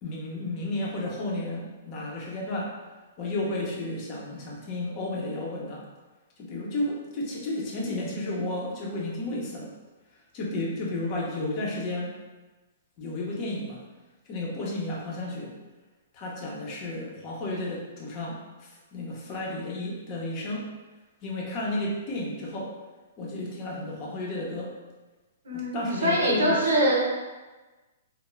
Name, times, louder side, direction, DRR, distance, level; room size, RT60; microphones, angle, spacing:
voice 1, 0.0-2.7 3.2-5.8 6.4-9.7 10.3-12.1 13.0-13.8 14.3-15.5 16.1-18.4 18.9-20.7 21.2-22.7 23.2-24.7 25.5-26.6, left 2 dB, 35° left, -3 dB, 0.6 m, -32 dB
voice 2, 25.4-27.0, right 1 dB, 85° right, -3 dB, 0.8 m, -23 dB
2.3 x 2.0 x 3.0 m, 1.2 s
hypercardioid pair, 150°, 0 cm